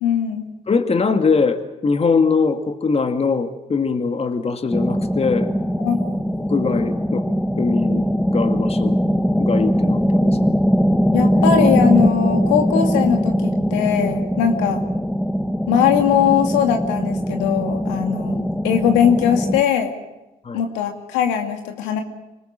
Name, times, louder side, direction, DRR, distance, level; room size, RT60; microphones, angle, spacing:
voice 1, 0.0-0.5 5.8-6.0 11.1-14.8 15.7-19.9 20.5-22.0, left 8 dB, 75° left, 4 dB, 2.4 m, -20 dB
voice 2, 0.7-5.5 6.4-7.3 7.6-8.1 8.3-9.0 9.4-10.4 20.4-20.6, left 4 dB, 30° left, 7 dB, 2.1 m, -21 dB
sound 1, 4.7-19.6, equal, 5° left, 1.3 m, -20 dB
26.0 x 19.5 x 7.5 m, 1.0 s
hypercardioid pair, 50°, 19 cm